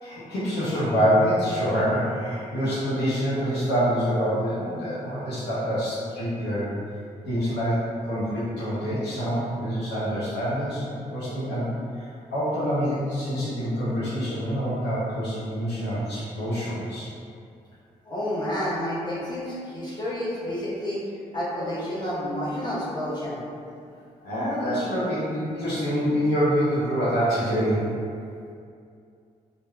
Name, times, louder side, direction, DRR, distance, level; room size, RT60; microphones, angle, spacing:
voice 1, 0.0-6.7 7.3-7.8 8.0-17.1 24.2-27.9, equal, 80° left, -10 dB, 0.7 m, -26 dB
voice 2, 18.0-21.0 21.3-23.4, left 1 dB, 25° left, -8 dB, 0.9 m, -30 dB
3.1 x 2.1 x 2.2 m, 2.4 s
supercardioid pair, 45°, 17 cm